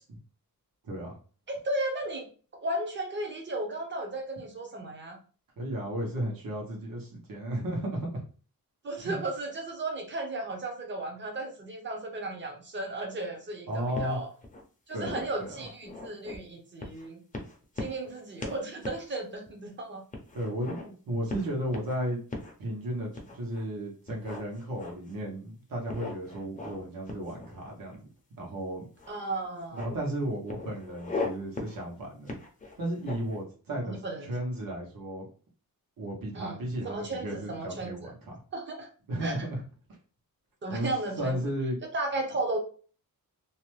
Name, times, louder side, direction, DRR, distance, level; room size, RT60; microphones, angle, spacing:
voice 1, 0.8-1.2 5.6-8.2 9.0-9.2 13.7-14.2 14.9-15.6 20.3-22.2 22.6-28.0 28.4-28.9 29.7-32.4 32.8-35.2 36.0-38.3 39.1-39.6 40.7-40.9 41.2-41.8, right 1 dB, 70° right, -2 dB, 1.2 m, -34 dB
voice 2, 1.5-2.3 2.6-5.2 8.8-14.3 14.9-17.2 17.8-20.0 29.1-29.9 33.8-34.3 36.3-36.6 36.8-38.1 38.5-38.9 39.2-39.4 40.6-41.4 41.9-42.6, right 2 dB, 30° right, 2 dB, 0.7 m, -34 dB
sound 1, 13.9-14.6 15.0-16.4 16.8-17.1 17.3-18.1 18.4-18.6 18.8-19.0 19.5-19.6 20.1-20.9 21.3-22.0 22.3-22.5 23.1-23.6 24.1-25.2 25.9-26.8 27.1-28.0 29.0-29.1 29.4-30.0 30.5-31.3 31.6-31.8 32.3-33.4, left 3 dB, 25° left, 0.6 m, -38 dB
2.8 x 2.1 x 3.1 m, 0.39 s
wide cardioid pair, 170°, 35 cm